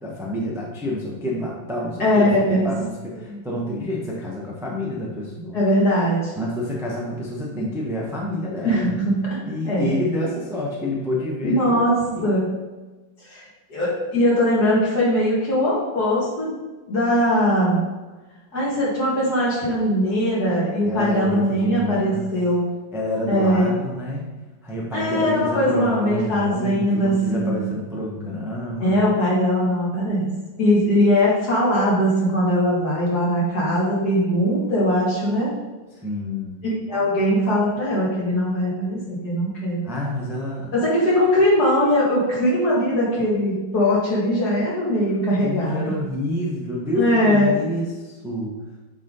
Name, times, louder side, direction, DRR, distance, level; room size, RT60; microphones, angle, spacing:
voice 1, 0.0-5.6 6.3-9.0 9.4-12.4 20.8-22.3 22.9-24.2 24.6-29.1 36.0-36.6 39.8-40.7 45.4-48.6, left 1 dB, ahead, -4 dB, 0.6 m, -28 dB
voice 2, 2.0-2.7 5.5-6.3 8.6-9.2 9.6-9.9 11.4-12.5 13.2-16.6 16.9-17.8 18.5-22.7 23.3-23.8 24.9-27.6 28.8-30.3 30.6-35.5 36.6-39.8 40.7-45.9 47.0-47.6, equal, 50° left, -6 dB, 2.5 m, -20 dB
8.3 x 3.6 x 4.0 m, 1.2 s
omnidirectional pair, 2.3 m